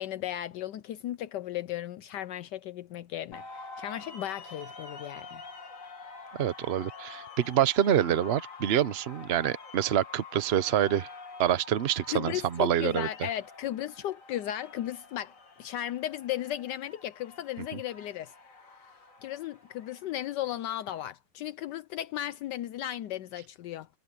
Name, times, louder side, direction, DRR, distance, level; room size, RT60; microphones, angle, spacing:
voice 1, 0.0-5.4 12.1-18.3 19.2-23.9, left 12 dB, 75° left, 1.3 m, -35 dB
sound 1, 3.3-21.1, left 4 dB, 45° left, 2.5 m, -48 dB
voice 2, 6.4-11.1 11.4-13.1, right 10 dB, 50° right, 0.8 m, -26 dB
omnidirectional pair, 1.9 m